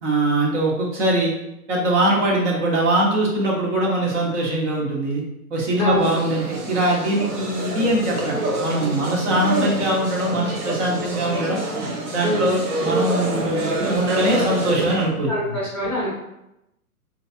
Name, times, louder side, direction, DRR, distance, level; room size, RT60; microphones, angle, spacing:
voice 1, 0.0-1.3 1.7-5.2 5.5-11.6 12.1-15.6, right 1 dB, 50° right, -2 dB, 1.2 m, -22 dB
voice 2, 5.8-6.1 12.2-12.5 15.3-16.1, equal, 5° left, -9 dB, 0.7 m, -24 dB
sound 1, 5.9-15.1, right 2 dB, 70° right, 1.0 m, -26 dB
3.2 x 3.2 x 2.7 m, 0.86 s
hypercardioid pair, 130°, 45 cm